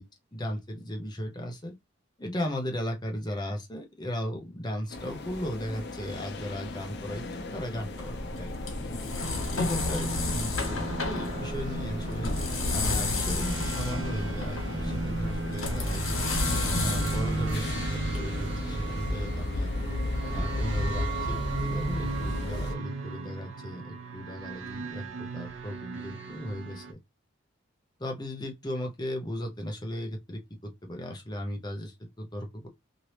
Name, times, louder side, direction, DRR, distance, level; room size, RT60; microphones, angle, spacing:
voice 1, 0.3-1.7 2.2-7.3 7.5-8.6 9.5-12.3 12.7-16.3 16.8-19.7 20.3-27.0 28.0-32.7, equal, 20° left, 0.7 m, -36 dB
sound 1, 4.9-22.7, left 1 dB, 55° left, 0.7 m, -35 dB
sound 2, 7.8-18.2, left 3 dB, 85° left, 1.4 m, -32 dB
sound 3, 9.2-26.9, right 3 dB, 60° right, 0.6 m, -36 dB
2.9 x 2.7 x 3.2 m
head